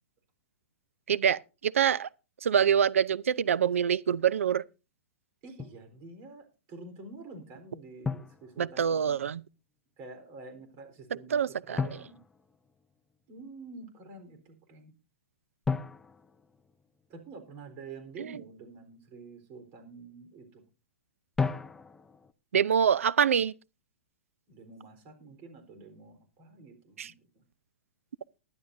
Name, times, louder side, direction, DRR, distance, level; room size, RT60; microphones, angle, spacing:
voice 1, 1.1-2.1 2.4-4.6 8.6-9.4 11.3-12.0 18.2-18.3 22.5-23.5 27.0-27.1, right 8 dB, 90° right, 0.6 m, -25 dB
voice 2, 5.4-9.2 10.0-12.2 13.3-14.9 17.1-20.6 24.5-27.4, right 3 dB, 35° right, 3.9 m, -48 dB
Drum, 5.6-5.9 8.0-9.2 11.8-13.2 15.7-17.4 21.4-22.3, left 4 dB, 5° left, 0.6 m, -35 dB
19.5 x 11.5 x 2.7 m
hypercardioid pair, 145°, 7 cm